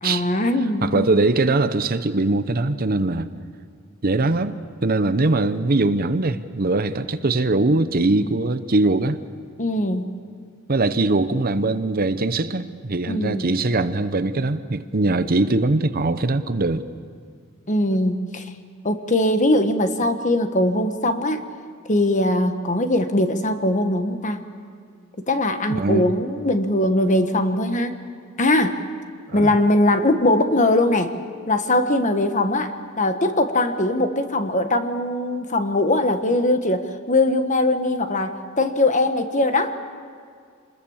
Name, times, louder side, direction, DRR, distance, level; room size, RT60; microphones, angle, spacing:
voice 1, 0.0-1.1 9.6-10.1 13.1-13.5 17.7-18.5 18.8-21.4 21.9-24.4 25.2-28.0 28.4-28.8 29.3-31.1 31.5-39.8, left 1 dB, 35° left, 8 dB, 1.3 m, -21 dB
voice 2, 0.8-3.3 4.0-9.2 10.7-16.9 25.7-26.1 29.3-29.5, right 2 dB, 45° right, 11 dB, 0.8 m, -21 dB
27.0 x 21.0 x 7.2 m, 2.2 s
head